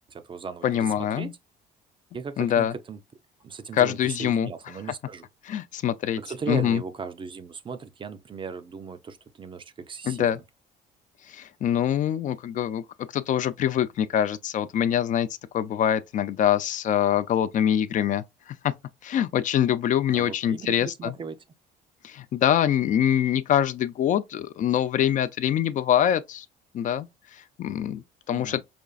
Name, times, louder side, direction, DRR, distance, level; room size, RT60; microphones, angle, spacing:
voice 1, 0.1-1.3 2.1-3.0 3.4-5.2 6.2-10.4 20.1-21.4 28.3-28.6, right 5 dB, 30° right, 0.4 m, -37 dB
voice 2, 0.6-1.3 2.4-2.7 3.7-4.5 5.4-6.2 6.5-6.8 10.1-10.4 11.3-12.8 13.1-15.3 15.5-18.7 19.0-21.1 22.0-26.5 26.7-27.1 27.3-28.6, left 10 dB, 50° left, 0.4 m, -24 dB
5.1 x 2.4 x 2.3 m
cardioid pair, 110°, 17 cm